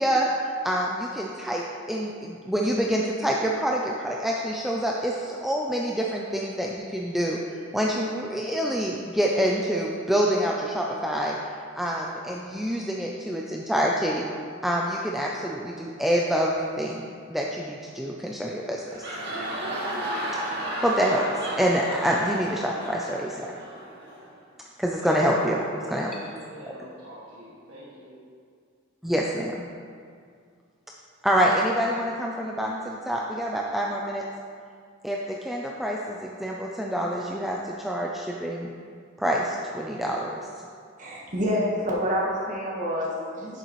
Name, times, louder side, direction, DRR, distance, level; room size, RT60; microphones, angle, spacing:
voice 1, 0.0-7.4 7.7-11.4 11.8-14.2 14.6-19.0 20.8-21.3 21.6-23.5 24.8-25.6 25.9-26.2 29.0-29.7 31.2-34.3 35.0-38.7 39.2-40.4, equal, ahead, -2 dB, 0.4 m, -26 dB
sound 1, 18.7-24.3, right 1 dB, 55° right, 1.9 m, -33 dB
voice 2, 25.0-28.2, right 1 dB, 80° right, -8 dB, 1.4 m, -43 dB
voice 3, 41.0-43.6, equal, 40° right, -4 dB, 1.3 m, -27 dB
10.5 x 6.7 x 3.1 m, 2.2 s
head